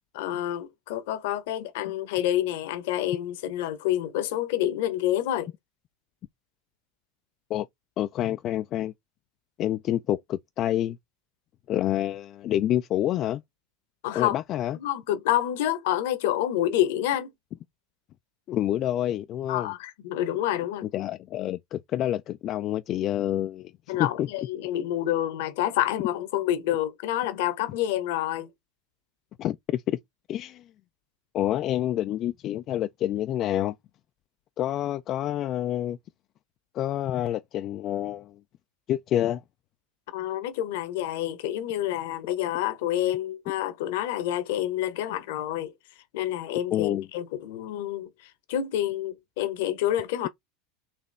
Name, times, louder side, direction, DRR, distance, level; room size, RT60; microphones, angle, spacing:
voice 1, 0.1-5.5 14.0-14.3 14.8-17.3 19.5-20.9 23.9-28.5 40.1-45.7 46.1-50.3, left 12 dB, 65° left, 0.9 m, -28 dB
voice 2, 8.0-8.9 9.6-11.0 11.7-13.4 14.1-14.8 18.5-19.7 20.9-24.3 29.4-30.0 30.3-30.6 31.3-33.7 34.6-36.0 36.7-38.4 38.9-39.4 46.7-47.1, left 12 dB, 45° left, 0.3 m, -28 dB
4.2 x 2.8 x 3.3 m
hypercardioid pair, 85°, 0 cm